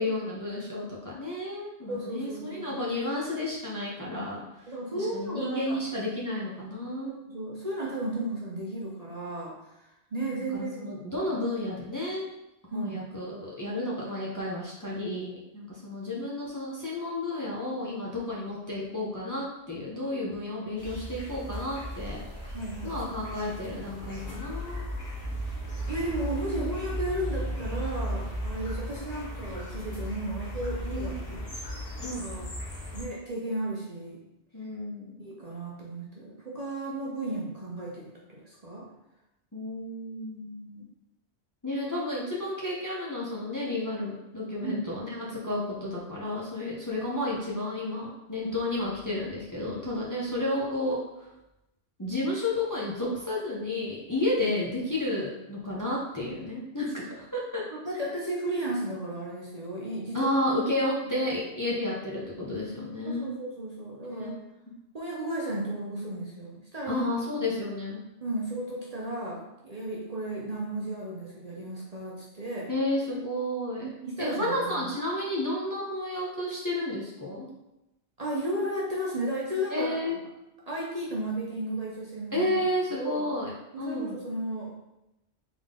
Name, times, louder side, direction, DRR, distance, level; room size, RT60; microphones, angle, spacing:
voice 1, 0.0-4.4 4.9-7.2 10.3-12.2 12.7-22.2 22.8-24.8 30.9-31.4 32.0-32.2 34.5-35.2 39.5-40.8 41.6-51.3 52.0-57.6 60.1-63.3 64.1-64.8 66.9-68.0 72.7-73.9 74.2-77.5 79.7-80.2 82.3-84.2, left 1 dB, 20° left, -5 dB, 0.7 m, -32 dB
voice 2, 1.9-2.7 4.7-5.8 7.3-9.7 10.1-11.0 12.7-13.0 22.5-23.1 25.9-31.4 32.2-32.5 32.9-34.2 35.2-38.8 44.6-44.8 57.7-60.3 63.0-64.3 64.9-67.0 68.2-72.7 73.8-74.9 78.2-80.2 80.7-82.6 83.0-83.3 83.7-84.9, right 1 dB, 40° right, -4 dB, 0.7 m, -34 dB
sound 1, 20.8-33.0, equal, 45° left, 1.2 m, -36 dB
3.7 x 3.6 x 3.7 m, 0.92 s
omnidirectional pair, 1.2 m